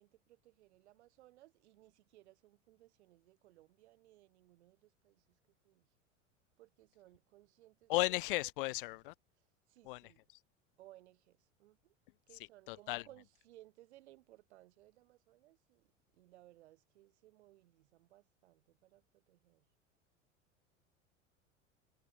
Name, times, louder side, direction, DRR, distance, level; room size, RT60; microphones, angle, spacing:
voice 1, 0.0-5.4 5.6-5.9 6.6-8.2 8.6-10.2 10.8-11.9 12.3-15.9 16.1-19.7, right 16 dB, 60° right, 6.5 m, -63 dB
voice 2, 7.9-9.1 9.9-10.0 12.7-13.0, left 21 dB, 45° left, 0.4 m, -35 dB
figure-of-eight pair, 80°, 38 cm